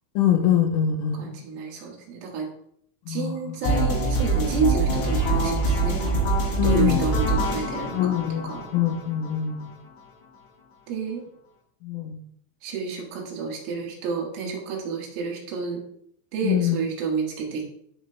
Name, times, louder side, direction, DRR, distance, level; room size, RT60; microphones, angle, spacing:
voice 1, 0.2-1.3 3.1-3.6 6.6-7.0 7.9-9.7 11.8-12.2 16.4-16.8, left 10 dB, 80° left, 4 dB, 3.5 m, -24 dB
voice 2, 1.1-2.5 3.1-6.3 6.6-8.2 8.4-8.7 10.9-11.2 12.6-15.8 16.3-17.7, right 5 dB, 80° right, -1 dB, 4.1 m, -30 dB
sound 1, 3.6-9.6, right 2 dB, 65° left, 3.3 m, -24 dB
13.5 x 5.4 x 2.2 m, 0.66 s
omnidirectional pair, 5.7 m